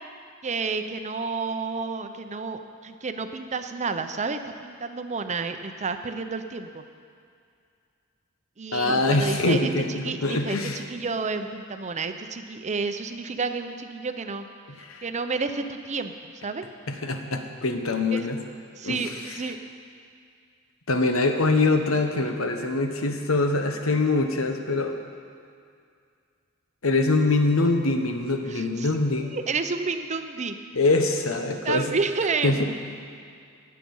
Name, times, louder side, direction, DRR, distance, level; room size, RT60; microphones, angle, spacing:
voice 1, 0.4-6.8 8.6-14.5 15.0-16.6 18.1-18.3 18.7-19.6 28.5-28.9 29.3-30.6 31.6-32.5, right 4 dB, 35° right, 8 dB, 0.7 m, -30 dB
voice 2, 8.7-10.8 14.7-15.0 16.9-18.4 18.8-19.0 20.9-25.0 26.8-29.3 30.7-32.0 32.4-32.6, left 2 dB, 80° left, 5 dB, 1.2 m, -24 dB
19.5 x 7.6 x 5.5 m, 2.3 s
head